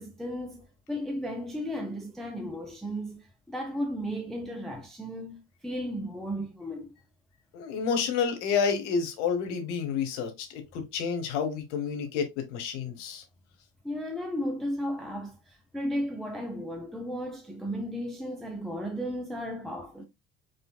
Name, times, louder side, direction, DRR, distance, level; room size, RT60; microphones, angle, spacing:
voice 1, 0.0-6.9 13.8-20.0, equal, ahead, 0.5 m, -35 dB
voice 2, 7.5-13.2, left 6 dB, 60° left, 1.2 m, -29 dB
5.1 x 3.1 x 2.3 m
figure-of-eight pair, 60°, 39 cm